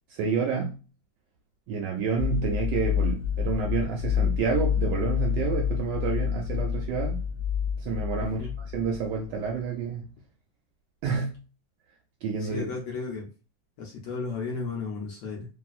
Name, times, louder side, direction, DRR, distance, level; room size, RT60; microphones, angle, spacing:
voice 1, 0.1-0.7 1.7-7.2 7.8-10.1 11.0-11.3 12.2-12.7, right 5 dB, 75° right, 1.1 m, -29 dB
sound 1, 2.2-9.3, left 8 dB, 35° right, 0.3 m, -28 dB
voice 2, 8.2-8.5 12.5-13.2 13.8-15.5, left 4 dB, 70° left, 1.3 m, -34 dB
3.1 x 2.7 x 2.4 m
omnidirectional pair, 2.1 m